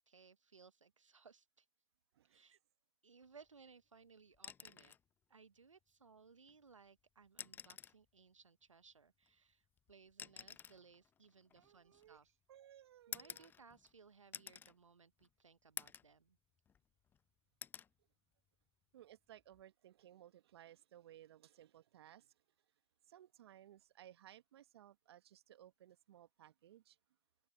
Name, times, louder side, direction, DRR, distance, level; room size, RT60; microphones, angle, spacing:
voice 1, 0.0-1.7 2.2-2.6 3.0-5.0 5.3-12.3 13.1-16.4, right 5 dB, 90° right, 1.0 m, -63 dB
voice 2, 2.1-2.6 11.5-12.2 12.5-13.5 18.9-22.4 23.0-27.0, right 12 dB, 55° right, 1.4 m, -61 dB
sound 1, 4.3-5.1 6.5-6.6 7.3-8.1 9.2-12.3 13.1-14.0 14.3-14.7 15.2-15.3 15.8-16.2 16.6-17.2 17.6-17.9 19.4-19.6, left 8 dB, 10° left, 0.6 m, -51 dB
open air
hypercardioid pair, 125°, 16 cm